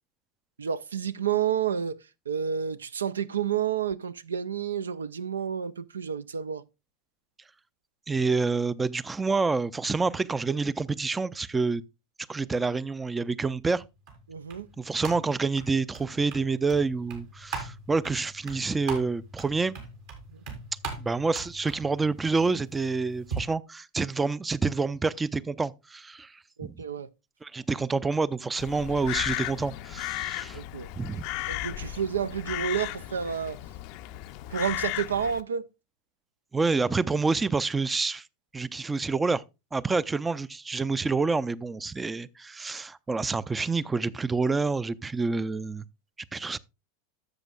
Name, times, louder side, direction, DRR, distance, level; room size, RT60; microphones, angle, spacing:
voice 1, 0.6-2.0 2.3-6.6 14.3-14.7 20.3-20.4 26.6-27.1 30.5-30.9 31.5-33.6 34.5-35.7, right 8 dB, 85° right, 0.4 m, -30 dB
voice 2, 8.1-11.8 12.3-13.8 14.8-19.7 21.0-26.7 27.4-30.6 30.9-31.3 36.5-38.3 38.5-39.4 39.7-45.9 46.3-46.6, right 4 dB, 15° right, 0.4 m, -28 dB
sound 1, 13.7-23.4, right 4 dB, 65° right, 3.2 m, -41 dB
Crow, 28.6-35.4, left 17 dB, 55° left, 0.4 m, -35 dB
12.5 x 7.3 x 2.3 m
hypercardioid pair, 90°, 0 cm